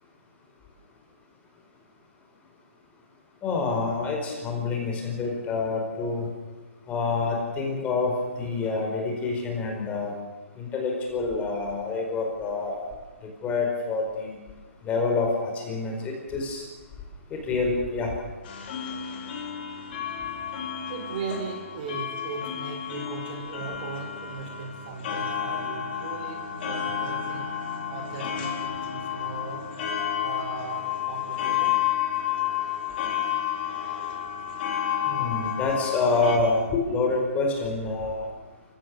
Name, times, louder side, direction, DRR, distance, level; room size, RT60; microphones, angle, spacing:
voice 1, 3.4-6.3 6.9-10.1 10.6-12.9 13.4-14.4 14.8-16.6 17.3-18.1 35.1-38.3, left 3 dB, 20° left, 1 dB, 4.9 m, -27 dB
sound 1, 18.4-36.4, left 9 dB, 45° left, 4.1 m, -31 dB
voice 2, 20.9-27.5 27.9-29.7 30.2-31.8 34.7-34.9, right 4 dB, 40° right, 3 dB, 5.0 m, -38 dB
27.0 x 16.0 x 7.0 m, 1.2 s
hypercardioid pair, 145°, 7 cm